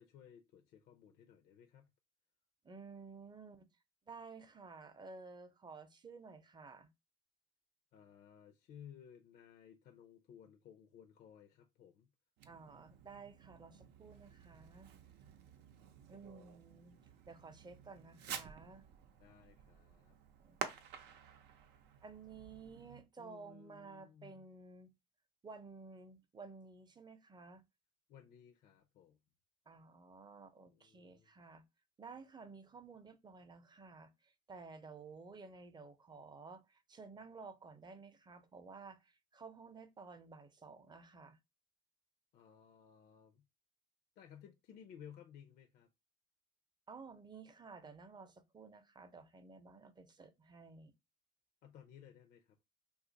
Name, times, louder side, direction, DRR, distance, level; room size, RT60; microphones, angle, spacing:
voice 1, 0.0-1.9 7.9-12.1 19.2-20.1 23.2-24.5 28.1-29.2 30.7-31.3 42.3-43.4 44.2-45.9 51.6-52.6, left 8 dB, 70° left, 0.5 m, -58 dB
voice 2, 2.6-3.7 4.1-6.9 12.5-14.9 16.1-17.0 17.3-18.9 20.4-20.6 22.0-24.9 25.4-27.6 29.7-31.6 32.0-41.4 46.9-50.9, right 4 dB, 25° right, 0.6 m, -54 dB
Fireworks, 12.4-23.1, right 8 dB, 85° right, 0.6 m, -51 dB
2.8 x 2.4 x 3.8 m
cardioid pair, 110°, 17 cm